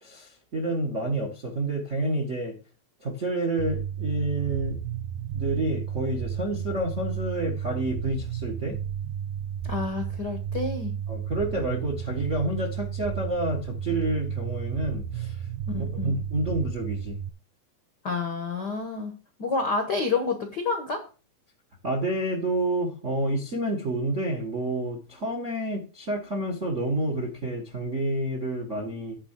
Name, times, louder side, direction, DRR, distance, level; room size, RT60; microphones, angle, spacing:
voice 1, 0.0-2.6 3.0-4.8 5.3-8.8 11.1-15.5 15.8-17.2 21.8-29.2, right 1 dB, 60° right, 1 dB, 0.7 m, -29 dB
sound 1, 3.6-17.3, right 9 dB, 75° right, 2.1 m, -33 dB
voice 2, 9.6-10.9 15.7-16.1 18.0-19.1 19.4-21.1, left 4 dB, 90° left, 5 dB, 0.9 m, -29 dB
10.0 x 3.8 x 7.3 m, 0.34 s
omnidirectional pair, 4.1 m